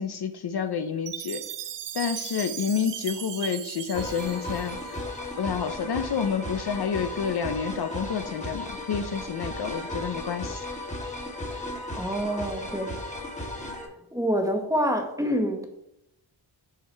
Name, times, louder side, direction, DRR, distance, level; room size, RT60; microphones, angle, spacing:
voice 1, 0.0-1.4 1.9-5.0 5.4-10.6, left 7 dB, 55° left, 9 dB, 0.6 m, -29 dB
Chime, 1.1-5.3, right 10 dB, 65° right, 0.5 m, -37 dB
sound 1, 3.9-13.9, left 1 dB, 15° left, 1.3 m, -35 dB
voice 2, 12.0-13.0 14.1-15.7, equal, 5° right, 4 dB, 1.1 m, -26 dB
5.6 x 4.7 x 4.5 m, 0.82 s
wide cardioid pair, 65°, 47 cm